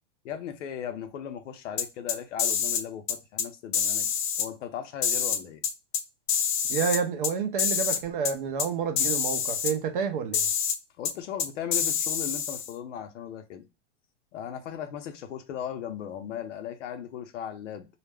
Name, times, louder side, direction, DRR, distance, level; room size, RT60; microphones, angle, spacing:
voice 1, 0.2-4.1 4.4-5.6 11.0-13.7 14.3-17.9, left 9 dB, 90° left, 0.7 m, -37 dB
sound 1, 1.8-2.8 3.1-3.5 3.7-4.5 5.0-6.0 6.3-7.3 7.6-8.0 8.2-8.3 8.6-8.7 9.0-9.7 10.3-10.8 11.0-11.1 11.4-12.7, left 7 dB, 45° left, 0.4 m, -27 dB
voice 2, 6.7-10.5, right 6 dB, 45° right, 0.5 m, -29 dB
2.4 x 2.1 x 3.3 m
supercardioid pair, 175°, 35 cm